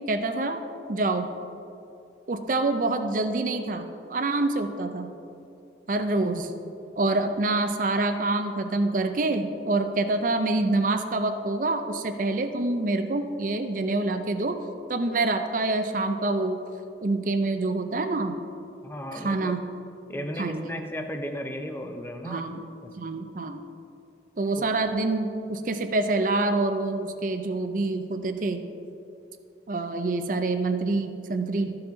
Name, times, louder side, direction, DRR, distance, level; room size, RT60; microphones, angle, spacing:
voice 1, 0.1-0.6 0.9-1.3 2.3-5.1 5.9-6.5 7.0-14.6 14.9-16.6 17.0-18.3 19.1-19.6 20.1-20.8 22.2-22.6 23.0-23.6 24.4-28.6 29.7-31.7, right 2 dB, 50° right, 8 dB, 0.5 m, -26 dB
voice 2, 18.8-19.5 20.1-22.4 22.8-22.9 24.6-24.7, equal, 15° left, 6 dB, 0.6 m, -35 dB
14.0 x 5.8 x 3.9 m, 2.7 s
head